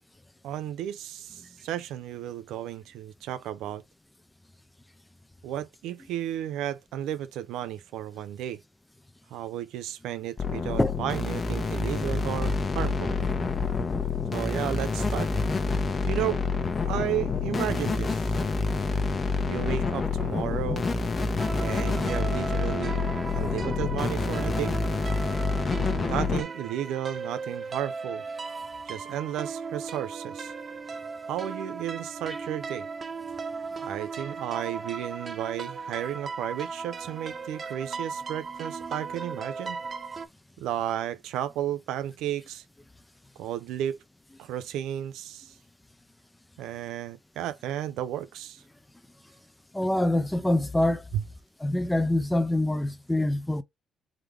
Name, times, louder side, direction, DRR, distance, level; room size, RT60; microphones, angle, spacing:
voice 1, 0.4-3.8 5.4-8.6 9.3-13.2 14.3-15.3 16.0-16.4 16.8-18.2 19.5-20.9 21.6-24.8 26.1-28.2 28.9-30.5 31.3-32.9 33.8-39.8 40.6-42.6 43.4-44.0 44.4-45.5 46.6-48.6 51.1-51.2, right 11 dB, 90° right, 0.4 m, -33 dB
sound 1, 10.4-26.4, left 4 dB, 40° left, 0.9 m, -28 dB
sound 2, 21.4-40.3, right 4 dB, 40° right, 0.6 m, -37 dB
voice 2, 49.7-51.0 51.6-53.6, left 1 dB, 10° left, 0.6 m, -25 dB
3.7 x 3.2 x 3.2 m
cardioid pair, 90°, 0 cm